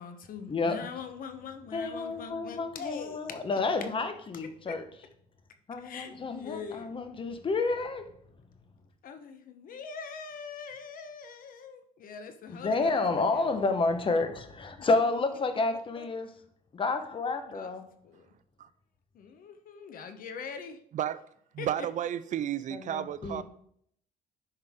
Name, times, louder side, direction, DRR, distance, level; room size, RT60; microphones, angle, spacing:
voice 1, 0.0-3.9 4.3-4.8 5.8-6.9 9.0-13.5 14.8-14.9 16.0-16.1 17.5-17.7 18.0-18.3 19.1-20.8 21.6-21.9, left 6 dB, 55° left, 1.0 m, -43 dB
voice 2, 1.7-4.8 5.7-8.1 12.5-16.3 16.7-17.9 22.7-23.4, left 3 dB, 30° left, 1.1 m, -30 dB
voice 3, 21.5-23.4, right 10 dB, 50° right, 0.4 m, -32 dB
10.0 x 5.5 x 3.7 m
cardioid pair, 110°, 17 cm